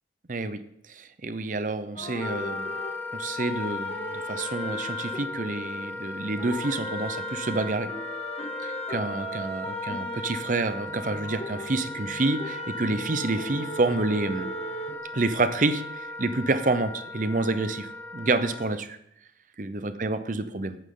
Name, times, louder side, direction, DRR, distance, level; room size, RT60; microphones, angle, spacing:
voice 1, 0.3-0.6 0.9-2.7 3.1-7.9 8.6-14.5 15.1-19.0 19.6-20.8, right 2 dB, 45° right, 11 dB, 0.8 m, -28 dB
sound 1, 2.0-6.0 6.4-15.0, left 1 dB, 35° left, 1.0 m, -37 dB
Wind instrument woodwind instrument, 2.2-18.8, left 2 dB, 10° left, 0.7 m, -37 dB
15.0 x 9.1 x 3.9 m, 0.76 s
head